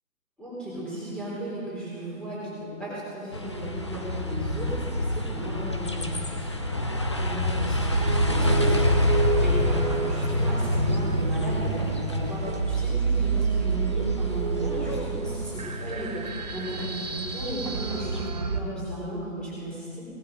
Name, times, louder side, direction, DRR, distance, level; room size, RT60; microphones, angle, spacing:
voice 1, 0.4-20.1, right 1 dB, ahead, -9 dB, 4.0 m, -35 dB
sound 1, 3.3-18.3, left 1 dB, 20° left, 0.5 m, -28 dB
sound 2, 7.9-18.6, right 6 dB, 30° right, 0.6 m, -30 dB
18.0 x 11.5 x 5.1 m, 2.2 s
hypercardioid pair, 155°, 40 cm